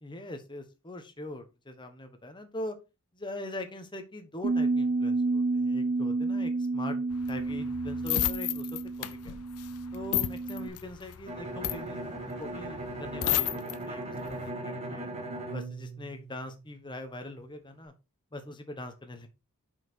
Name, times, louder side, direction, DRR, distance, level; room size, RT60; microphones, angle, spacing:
voice 1, 0.0-2.8 3.1-7.0 7.3-8.8 9.2-9.4 9.9-12.0 12.4-15.1 15.5-17.9 18.3-19.3, left 1 dB, 20° left, 6 dB, 1.2 m, -42 dB
Bass guitar, 4.4-10.7, right 3 dB, 55° right, 0.6 m, -30 dB
sound 1, 7.1-13.8 14.2-14.5, left 13 dB, 75° left, 0.6 m, -32 dB
Bowed string instrument, 11.3-16.9, right 2 dB, 30° right, 1.7 m, -38 dB
5.9 x 5.4 x 4.5 m, 0.28 s
head